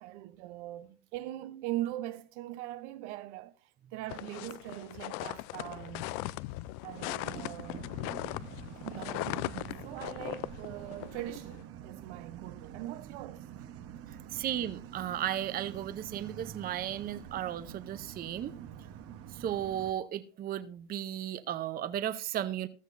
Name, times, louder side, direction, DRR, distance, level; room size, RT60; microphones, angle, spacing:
voice 1, 0.0-3.5 3.9-6.2 6.8-7.8 8.8-13.7 14.4-14.5, right 15 dB, 70° right, 0.9 m, -41 dB
sound 1, 4.1-11.6, left 19 dB, 55° left, 0.5 m, -39 dB
sound 2, 7.0-19.9, right 10 dB, 40° right, 1.0 m, -47 dB
voice 2, 14.3-18.5 19.4-22.7, right 11 dB, 25° right, 0.6 m, -35 dB
15.0 x 13.0 x 2.6 m
supercardioid pair, 130°, 36 cm